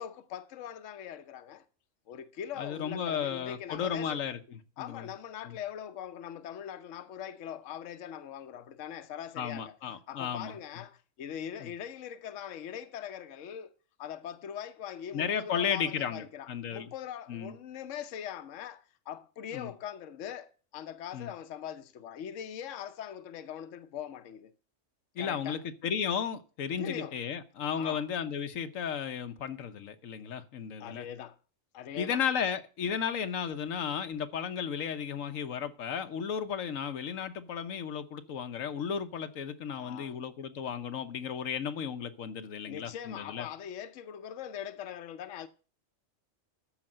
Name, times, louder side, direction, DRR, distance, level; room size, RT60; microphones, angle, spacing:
voice 1, 0.0-1.6 2.1-4.2 4.8-9.8 10.1-24.5 25.2-25.6 26.8-27.2 27.8-28.0 30.8-31.4 31.7-32.2 39.7-40.2 42.6-45.5, left 9 dB, 75° left, 1.1 m, -42 dB
voice 2, 2.6-5.1 5.4-5.6 9.4-10.5 11.6-11.7 15.1-16.9 17.3-17.5 19.5-19.7 21.1-21.3 25.1-31.1 32.0-43.5, left 7 dB, 90° left, 1.3 m, -34 dB
13.5 x 5.0 x 7.6 m
omnidirectional pair, 1.3 m